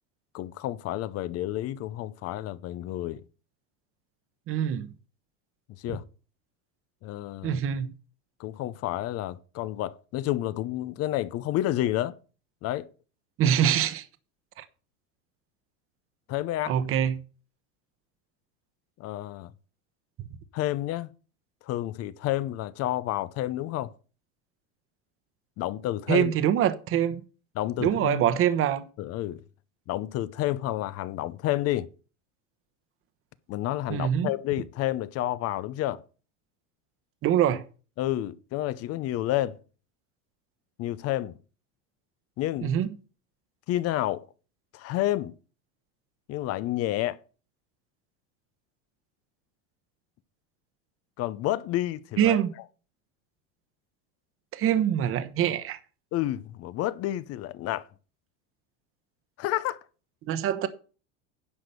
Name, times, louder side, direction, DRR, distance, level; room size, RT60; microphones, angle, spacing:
voice 1, 0.3-3.2 5.8-6.0 7.0-7.6 8.4-12.1 12.6-12.9 16.3-16.7 19.0-19.5 20.5-21.1 21.7-23.9 25.6-26.3 27.6-28.2 29.0-29.4 29.9-31.9 33.5-36.0 38.0-39.6 40.8-41.4 42.4-42.7 43.7-44.2 44.7-45.3 46.3-47.2 51.2-52.4 56.1-57.9 59.4-59.8, left 14 dB, 40° left, 0.7 m, -30 dB
voice 2, 4.5-4.9 5.9-6.0 7.4-7.9 13.4-14.0 14.6-14.7 16.7-17.2 26.1-27.2 27.8-28.9 33.9-34.3 37.2-37.6 42.6-42.9 52.2-52.5 54.5-55.8 60.3-60.7, right 10 dB, 35° right, 1.0 m, -24 dB
10.0 x 5.0 x 6.8 m
supercardioid pair, 135°, 36 cm